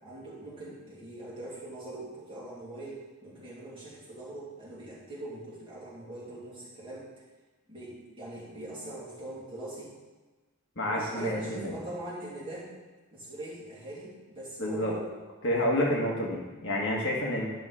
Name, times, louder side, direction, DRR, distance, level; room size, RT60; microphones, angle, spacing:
voice 1, 0.0-7.1 7.7-9.9 10.9-12.7 13.1-15.1, right 1 dB, 25° right, -8 dB, 2.8 m, -42 dB
voice 2, 10.8-11.7 14.6-14.9 15.4-17.5, left 1 dB, 55° left, -3 dB, 1.7 m, -29 dB
10.0 x 5.7 x 4.9 m, 1.2 s
head